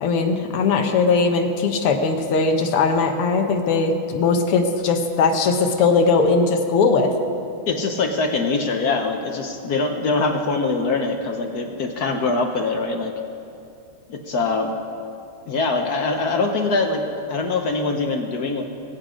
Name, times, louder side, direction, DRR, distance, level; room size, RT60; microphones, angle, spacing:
voice 1, 0.0-7.1, left 4 dB, 85° left, 4 dB, 2.0 m, -19 dB
voice 2, 7.7-13.1 14.1-14.7 15.5-18.6, left 3 dB, 60° left, 4 dB, 1.1 m, -23 dB
21.5 x 8.1 x 5.0 m, 2.7 s
omnidirectional pair, 2.4 m